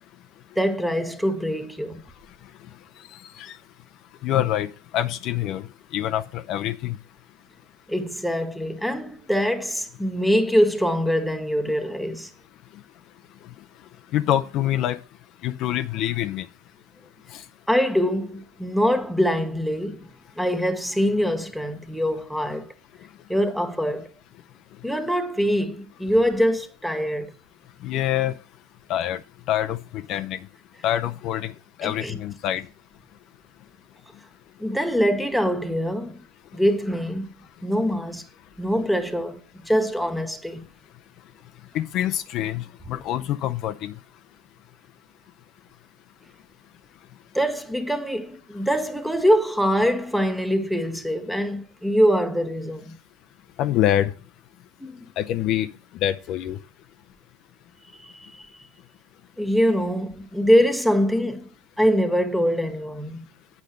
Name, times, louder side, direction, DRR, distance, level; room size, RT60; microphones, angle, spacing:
voice 1, 0.6-2.0 7.9-12.3 17.7-20.1 20.4-22.7 23.3-24.1 24.8-27.3 31.8-32.2 34.6-36.2 36.5-37.3 37.6-38.3 38.6-40.7 47.3-53.0 54.8-55.0 58.0-58.5 59.4-61.5 61.8-63.3, equal, ahead, 1.0 m, -23 dB
voice 2, 4.2-4.7 4.9-5.6 5.9-7.0 14.1-15.0 15.4-16.5 17.3-17.4 27.8-28.3 28.9-29.2 29.5-30.4 30.8-31.5 31.8-32.6 41.7-43.9 53.6-54.1 55.2-55.7 56.0-56.6, left 12 dB, 50° left, 0.5 m, -25 dB
8.6 x 5.2 x 6.4 m
supercardioid pair, 110°, 0 cm